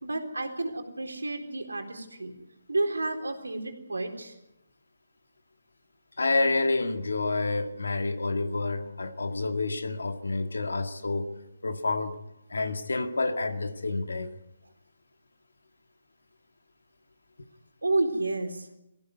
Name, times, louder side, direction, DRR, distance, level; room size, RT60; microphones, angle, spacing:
voice 1, 0.0-2.3 2.7-4.3 17.8-18.7, right 2 dB, 85° right, 4.0 m, -30 dB
voice 2, 6.2-11.3 11.6-12.2 12.5-14.3, left 3 dB, 75° left, 2.1 m, -28 dB
22.0 x 16.0 x 9.6 m
figure-of-eight pair, 145°, 0 cm